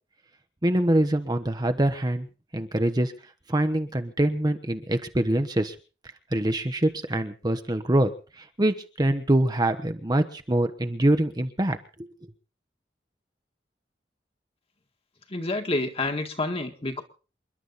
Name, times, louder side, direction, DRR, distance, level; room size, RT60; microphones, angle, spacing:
voice 1, 0.6-2.3 2.5-3.1 3.5-5.7 6.3-8.1 8.4-12.1, right 1 dB, 25° right, 7 dB, 1.1 m, -24 dB
voice 2, 15.3-17.0, left 2 dB, 35° left, 5 dB, 1.9 m, -28 dB
28.5 x 11.5 x 4.2 m, 0.37 s
head